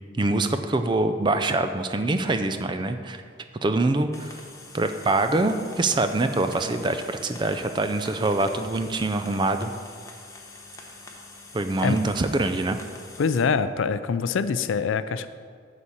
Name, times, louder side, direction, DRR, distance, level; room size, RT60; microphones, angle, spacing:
voice 1, 0.1-3.2 3.6-4.3 4.7-9.7 11.5-12.8, right 2 dB, 25° right, 8 dB, 0.4 m, -24 dB
sound 1, 4.1-13.4, left 3 dB, 15° left, 0.8 m, -45 dB
voice 2, 13.2-15.3, left 5 dB, 70° left, 13 dB, 0.4 m, -24 dB
9.6 x 4.1 x 7.1 m, 2.1 s
head